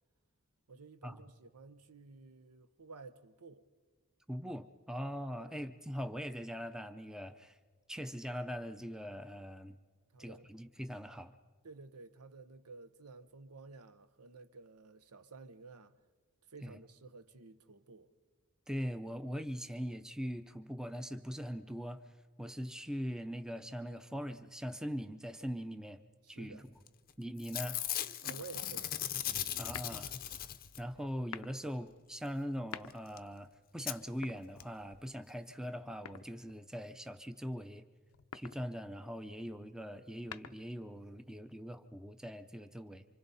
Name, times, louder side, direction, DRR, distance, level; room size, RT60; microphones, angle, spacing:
voice 1, 0.7-3.7 5.4-5.6 10.1-10.4 11.6-15.9 16.5-18.1 26.2-26.7 28.2-29.0, right 4 dB, 90° right, 0.9 m, -53 dB
voice 2, 4.3-7.6 7.9-9.8 10.2-11.3 16.6-16.8 18.7-22.0 22.4-26.0 26.3-26.6 27.2-27.8 29.6-30.1 30.8-37.8 38.3-43.0, equal, 5° right, 0.5 m, -41 dB
Packing tape duct tape / Tearing, 26.9-27.1 27.4-31.0 32.9-33.0 33.2-33.3 33.9-34.0 34.6-34.7 34.9-35.0, left 11 dB, 40° left, 0.6 m, -38 dB
sound 1, 28.2-28.9 29.6-30.2 31.1-31.6 32.5-33.3 34.1-35.0 36.1-36.7 38.1-38.7 40.0-40.9, left 7 dB, 80° left, 0.6 m, -49 dB
28.0 x 25.5 x 4.1 m
head